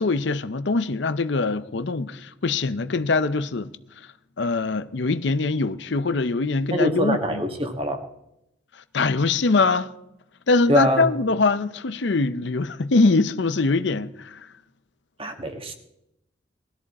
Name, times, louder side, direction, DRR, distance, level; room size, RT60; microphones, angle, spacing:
voice 1, 0.0-3.7 4.4-7.4 8.9-9.9 10.5-14.5, left 3 dB, 65° left, 0.6 m, -23 dB
voice 2, 6.7-8.0 10.7-11.1 15.2-15.7, equal, 30° right, 1.6 m, -23 dB
20.0 x 13.5 x 4.2 m
head